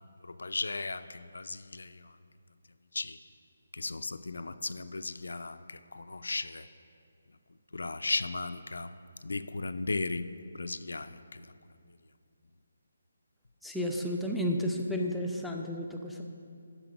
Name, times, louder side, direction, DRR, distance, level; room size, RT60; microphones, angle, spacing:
voice 1, 0.2-2.0 2.9-3.2 3.7-6.7 7.7-8.9 9.2-10.3 10.5-11.4, left 3 dB, 90° left, 11 dB, 0.4 m, -36 dB
voice 2, 13.6-16.2, equal, ahead, -1 dB, 0.3 m, -32 dB
12.0 x 4.2 x 5.1 m, 2.4 s
hypercardioid pair, 175°, 0 cm